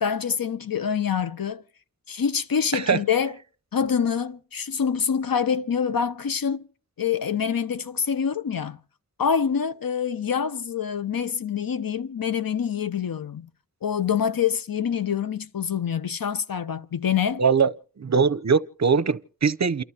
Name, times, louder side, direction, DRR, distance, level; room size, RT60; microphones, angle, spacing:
voice 1, 0.0-1.6 2.1-3.4 3.7-6.7 7.0-8.8 9.2-13.5 13.8-17.4, left 7 dB, 85° left, 0.9 m, -26 dB
voice 2, 17.4-19.8, right 5 dB, 50° right, 0.7 m, -22 dB
28.5 x 13.0 x 2.8 m
wide cardioid pair, 60°, 34 cm